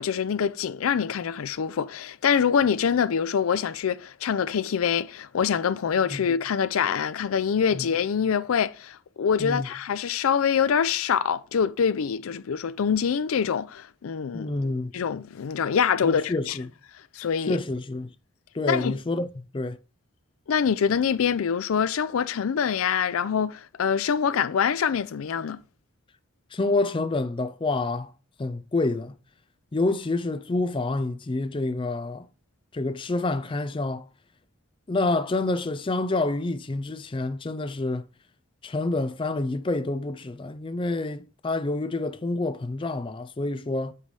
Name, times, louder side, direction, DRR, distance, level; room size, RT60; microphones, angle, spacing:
voice 1, 0.0-14.5 14.9-16.6 17.2-17.6 18.7-19.0 20.5-25.6, left 7 dB, 90° left, 0.4 m, -25 dB
voice 2, 9.4-9.7 14.3-14.9 16.0-16.7 17.5-18.1 18.5-19.8 26.5-28.1 28.4-29.2 29.7-32.3 32.7-34.0 34.9-38.1 38.6-43.9, left 2 dB, 25° left, 0.4 m, -28 dB
8.2 x 3.3 x 5.2 m
head